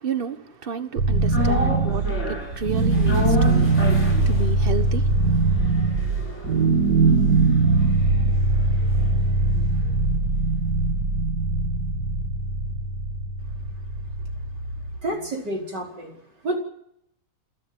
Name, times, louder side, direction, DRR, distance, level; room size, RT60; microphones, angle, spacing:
voice 1, 0.0-5.1 5.6-5.7, right 4 dB, 35° right, 1.4 m, -31 dB
sound 1, 1.0-15.0, right 3 dB, 70° right, 2.7 m, -21 dB
sound 2, 1.3-9.6 9.9-10.0, left 2 dB, 40° left, 8.2 m, -32 dB
voice 2, 15.0-16.1 16.4-16.6, right 1 dB, 90° right, 5.3 m, -29 dB
27.5 x 13.5 x 9.6 m
omnidirectional pair, 1.8 m